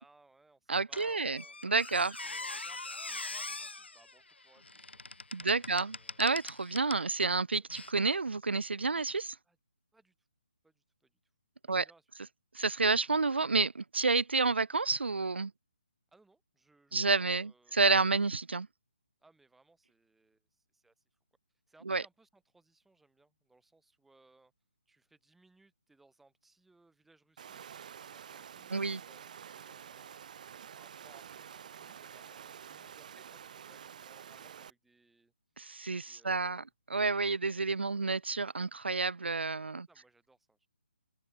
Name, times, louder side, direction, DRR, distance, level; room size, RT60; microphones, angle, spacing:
voice 1, 0.0-1.6 2.2-5.0 5.4-6.2 7.6-7.7 9.4-9.6 9.9-10.3 10.6-11.3 11.6-12.1 16.1-18.3 19.2-21.0 21.7-24.5 24.9-30.2 30.7-35.3 36.1-36.7 39.9-40.7, right 2 dB, 5° right, 5.5 m, -66 dB
voice 2, 0.7-2.2 5.3-9.4 11.7-11.8 12.5-15.5 16.9-18.7 21.9-22.0 28.7-29.0 35.6-36.6 36.9-39.9, right 4 dB, 85° right, 0.4 m, -30 dB
Squeak, 0.9-7.1 7.7-7.9, left 3 dB, 85° left, 1.7 m, -43 dB
Water, 27.4-34.7, right 8 dB, 45° right, 0.7 m, -49 dB
open air
figure-of-eight pair, 145°, 6 cm